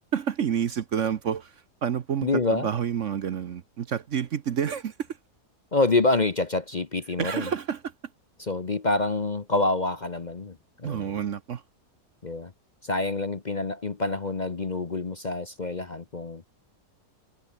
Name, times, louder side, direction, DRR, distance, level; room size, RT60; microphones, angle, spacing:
voice 1, 0.1-1.5 1.8-4.9 7.2-7.9 10.8-11.6, right 8 dB, 55° right, 1.1 m, -29 dB
voice 2, 2.2-2.7 5.7-7.5 8.4-11.1 12.2-12.5 12.8-16.4, left 2 dB, 30° left, 1.0 m, -27 dB
omnidirectional pair, 1.7 m